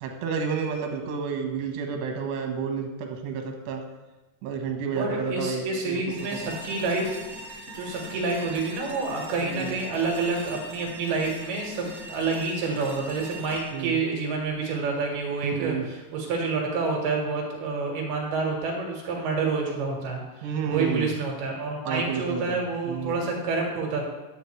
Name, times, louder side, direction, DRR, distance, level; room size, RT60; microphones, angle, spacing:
voice 1, 0.0-3.8 4.4-6.0 9.4-9.7 13.7-14.0 15.3-15.9 20.4-21.1 21.9-23.2, right 5 dB, 85° right, 3 dB, 3.3 m, -30 dB
voice 2, 5.0-7.1 7.8-24.0, right 4 dB, 70° right, -1 dB, 3.4 m, -28 dB
sound 1, 6.1-15.1, right 1 dB, 50° right, 0.7 m, -42 dB
9.8 x 9.5 x 3.2 m, 1.1 s
omnidirectional pair, 4.9 m